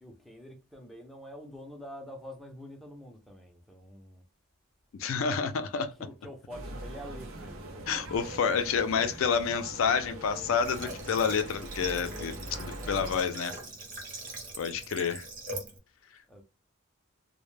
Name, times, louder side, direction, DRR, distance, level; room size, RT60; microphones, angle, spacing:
voice 1, 0.0-4.2 6.0-8.2 12.1-13.6 16.3-16.4, equal, ahead, 0.4 m, -47 dB
voice 2, 5.0-5.9 7.9-12.3 12.6-13.5 14.6-15.3, left 6 dB, 75° left, 0.4 m, -29 dB
sound 1, 6.5-13.2, right 1 dB, 80° right, 0.6 m, -42 dB
Water / Water tap faucet, 10.6-15.8, right 2 dB, 40° right, 0.7 m, -42 dB
2.1 x 2.0 x 3.1 m
head